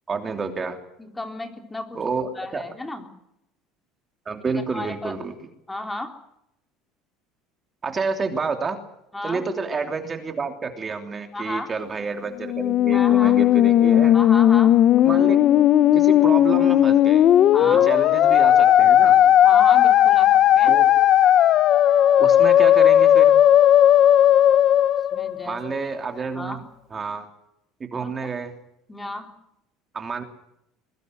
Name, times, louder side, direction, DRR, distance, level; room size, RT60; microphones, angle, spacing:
voice 1, 0.1-0.8 1.9-2.6 4.2-5.5 7.8-8.8 9.2-14.2 15.0-15.4 15.9-17.3 17.6-19.3 20.7-20.9 22.2-23.4 25.4-26.6 26.9-27.3 27.8-28.5 29.9-30.2, right 4 dB, 25° right, 5 dB, 3.1 m, -29 dB
voice 2, 1.0-2.0 2.4-3.1 4.7-5.1 5.7-6.2 9.1-9.4 11.3-11.7 12.9-13.4 14.1-14.8 17.5-17.9 19.4-20.8 25.1-25.6 26.3-26.7 27.9-28.1 28.9-29.3, left 2 dB, 10° left, 5 dB, 3.5 m, -32 dB
Musical instrument, 12.4-25.8, left 11 dB, 45° left, 0.9 m, -16 dB
22.0 x 22.0 x 7.8 m, 0.80 s
cardioid pair, 130°, 0 cm